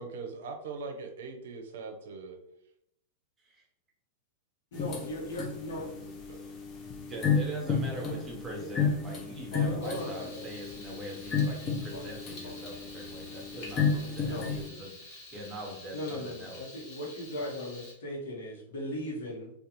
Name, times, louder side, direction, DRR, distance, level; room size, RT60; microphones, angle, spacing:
voice 1, 0.0-2.4 5.6-6.5, right 4 dB, 70° right, 4 dB, 0.5 m, -42 dB
voice 2, 4.7-5.9 8.6-8.7 9.5-10.5 11.9-12.1 12.4-12.5 14.2-14.5 15.9-19.5, left 1 dB, 75° left, -3 dB, 0.9 m, -38 dB
sound 1, 4.7-14.7, left 5 dB, 30° left, 0.5 m, -32 dB
voice 3, 7.1-16.8, right 1 dB, 20° right, -1 dB, 0.8 m, -42 dB
Frying (food), 9.8-17.9, left 2 dB, 50° left, 1.0 m, -49 dB
2.4 x 2.3 x 2.8 m, 0.77 s
hypercardioid pair, 120°, 0 cm